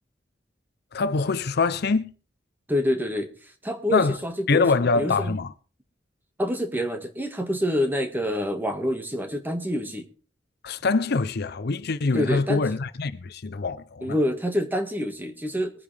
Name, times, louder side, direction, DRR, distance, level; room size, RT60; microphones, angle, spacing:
voice 1, 0.9-2.1 3.9-4.2 4.5-5.5 10.6-14.2, left 4 dB, 60° left, 0.6 m, -24 dB
voice 2, 2.7-3.3 3.6-4.7 5.0-5.4 6.4-10.1 12.1-12.6 14.0-15.7, equal, 10° right, 1.8 m, -26 dB
22.5 x 9.9 x 3.4 m
head